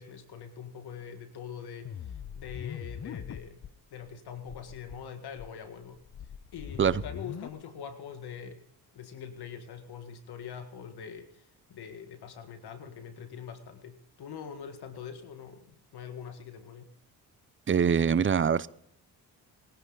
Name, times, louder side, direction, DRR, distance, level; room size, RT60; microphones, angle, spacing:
voice 1, 0.0-3.6 3.9-6.0 6.5-8.6 8.9-16.9, left 7 dB, 70° left, 7 dB, 1.8 m, -43 dB
sound 1, 1.8-3.7 4.1-4.2 4.4-5.0 5.4-7.5, left 8 dB, 40° left, 0.8 m, -41 dB
voice 2, 17.7-18.7, right 7 dB, 30° right, 18 dB, 0.7 m, -24 dB
22.5 x 11.0 x 4.0 m, 0.72 s
cardioid pair, 75°, 40 cm